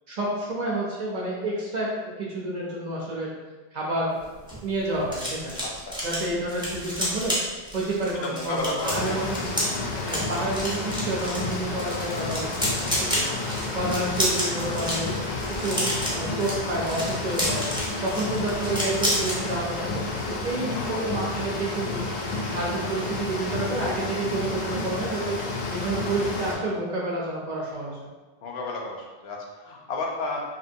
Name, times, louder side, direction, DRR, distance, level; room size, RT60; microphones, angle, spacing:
voice 1, 0.1-3.3 3.7-4.2 4.6-5.6 6.0-7.4 7.7-9.7 10.0-17.7 18.0-22.1 22.4-25.4 25.7-28.0, right 2 dB, 55° right, -4 dB, 0.5 m, -29 dB
sound 1, 4.2-19.4 19.7-20.0 20.2-20.5, equal, 5° right, 0.5 m, -30 dB
voice 2, 5.6-6.0 8.2-9.4 13.8-14.4 18.2-18.3 20.7-21.0 28.4-30.4, left 2 dB, 80° left, 0 dB, 0.8 m, -33 dB
sound 2, 8.8-26.6, left 3 dB, 55° left, 0.5 m, -31 dB
2.8 x 2.6 x 2.6 m, 1.3 s
omnidirectional pair, 1.1 m